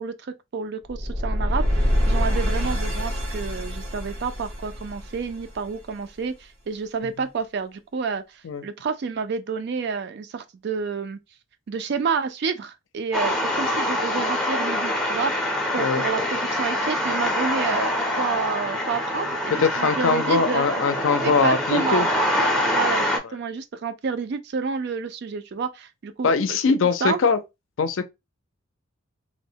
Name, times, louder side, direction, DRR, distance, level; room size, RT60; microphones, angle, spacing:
voice 1, 0.0-11.2 11.7-20.8 21.2-22.1 22.7-26.6 27.0-27.2, right 5 dB, 55° right, 0.4 m, -29 dB
sound 1, 0.9-5.9, equal, 85° right, 1.0 m, -25 dB
sound 2, 13.1-23.2, left 1 dB, 5° left, 0.5 m, -25 dB
voice 2, 19.6-22.1 26.2-27.4 27.8-28.0, left 5 dB, 70° left, 0.4 m, -22 dB
3.0 x 2.0 x 2.7 m
head